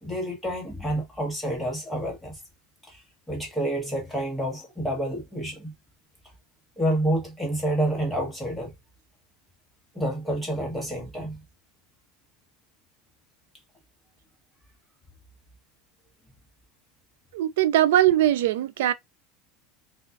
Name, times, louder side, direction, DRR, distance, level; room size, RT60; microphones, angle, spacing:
voice 1, 0.0-2.4 2.8-5.7 6.8-8.7 9.9-11.4, right 1 dB, 5° left, 1.1 m, -29 dB
voice 2, 17.3-18.9, right 12 dB, 90° right, 0.3 m, -21 dB
2.3 x 2.3 x 2.3 m
supercardioid pair, 140°, 0 cm